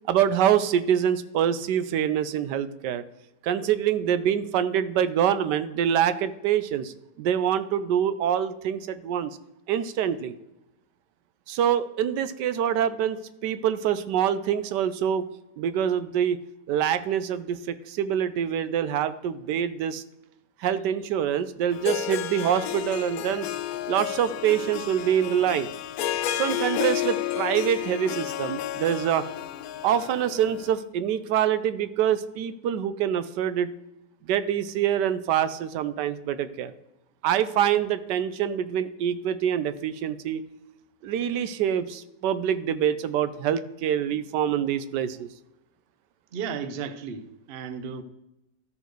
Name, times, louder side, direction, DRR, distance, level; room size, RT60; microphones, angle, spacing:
voice 1, 0.1-3.0 3.4-9.3 9.7-10.3 11.5-15.3 15.6-16.4 16.7-20.0 20.6-23.5 23.9-25.7 26.3-29.3 29.8-33.7 34.3-36.7 37.2-40.4 41.0-45.3, right 9 dB, 75° right, 13 dB, 1.2 m, -25 dB
Harp, 21.7-30.7, left 12 dB, 75° left, 0.8 m, -31 dB
voice 2, 46.3-48.0, right 6 dB, 90° right, 11 dB, 0.5 m, -34 dB
13.0 x 4.6 x 4.6 m, 0.91 s
omnidirectional pair, 2.0 m